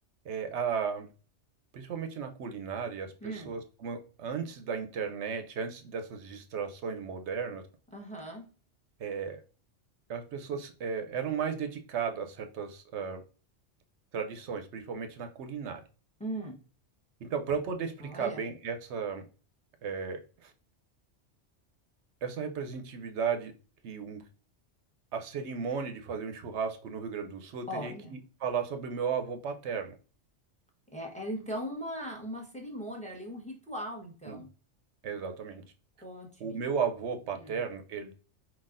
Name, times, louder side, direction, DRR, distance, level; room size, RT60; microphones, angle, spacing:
voice 1, 0.2-1.1 1.7-7.6 9.0-9.4 10.1-13.2 14.1-15.8 17.2-19.3 19.8-20.5 22.2-23.5 23.8-24.2 25.1-29.9 34.3-34.4 35.0-35.6 36.4-38.1, right 6 dB, 70° right, 7 dB, 0.9 m, -35 dB
voice 2, 3.2-3.5 7.9-8.4 16.2-16.6 18.0-18.4 27.7-28.1 30.9-34.5 36.0-36.6 37.3-37.6, equal, 5° left, 2 dB, 0.9 m, -39 dB
4.6 x 4.0 x 2.4 m, 0.37 s
omnidirectional pair, 1.2 m